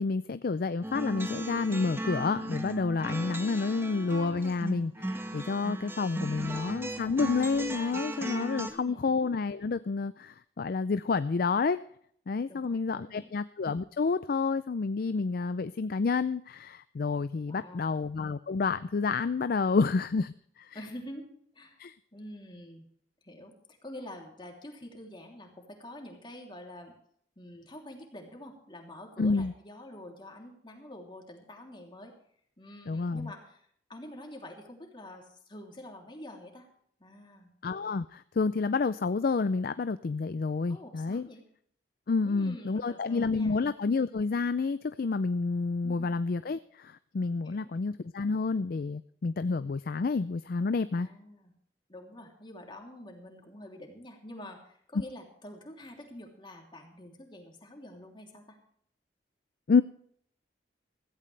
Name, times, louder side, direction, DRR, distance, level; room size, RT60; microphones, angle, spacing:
voice 1, 0.0-11.8 12.3-20.8 21.8-21.9 29.2-29.5 32.9-33.3 37.6-41.3 42.1-51.1 59.7-59.8, left 4 dB, 55° left, 13 dB, 0.4 m, -29 dB
sound 1, 0.8-8.7, right 1 dB, 15° right, 1.4 m, -37 dB
voice 2, 6.2-6.6 8.5-9.2 12.5-13.4 17.5-18.0 20.7-21.8 22.1-22.9 23.2-26.9 27.4-32.1 32.6-36.7 37.0-37.5 40.7-41.4 42.2-43.6 45.8-46.1 47.4-47.7 50.9-51.5 51.9-58.6, left 1 dB, 30° left, 1 dB, 3.1 m, -47 dB
16.0 x 15.0 x 3.3 m, 0.64 s
head